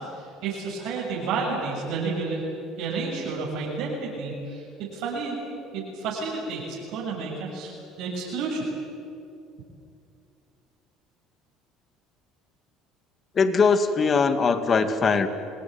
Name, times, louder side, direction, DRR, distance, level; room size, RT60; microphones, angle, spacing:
voice 1, 0.0-2.4 2.8-4.7 4.9-5.4 5.7-8.6, right 4 dB, 75° right, -5 dB, 7.3 m, -31 dB
voice 2, 13.4-15.3, left 5 dB, 35° left, 9 dB, 2.4 m, -21 dB
28.5 x 18.5 x 9.6 m, 2.6 s
supercardioid pair, 95°, 0 cm